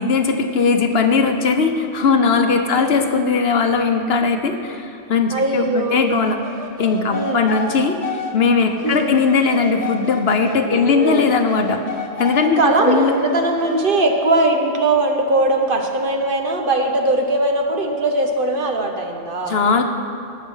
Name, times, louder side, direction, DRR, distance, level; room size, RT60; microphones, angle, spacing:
voice 1, 0.0-6.4 6.8-11.8 12.2-13.2 19.5-19.8, left 5 dB, 60° left, 6 dB, 1.0 m, -19 dB
voice 2, 2.7-3.0 5.3-6.1 7.1-7.5 8.8-9.2 10.7-11.3 12.4-19.6, right 2 dB, 50° right, 3 dB, 1.2 m, -20 dB
sound 1, 6.1-10.6 11.0-14.2, left 2 dB, 35° left, 1.2 m, -31 dB
18.5 x 6.5 x 5.5 m, 2.6 s
omnidirectional pair, 1.2 m